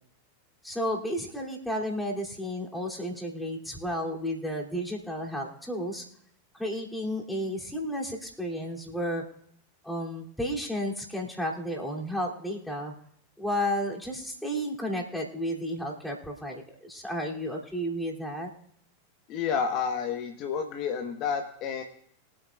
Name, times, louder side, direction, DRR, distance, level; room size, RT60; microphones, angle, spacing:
voice 1, 0.6-6.0 6.5-9.2 9.8-12.9 13.4-18.5, equal, 5° left, -2 dB, 2.7 m, -32 dB
voice 2, 19.3-21.8, left 6 dB, 40° left, 5 dB, 1.1 m, -30 dB
23.0 x 8.7 x 2.3 m, 0.69 s
figure-of-eight pair, 90°, 0 cm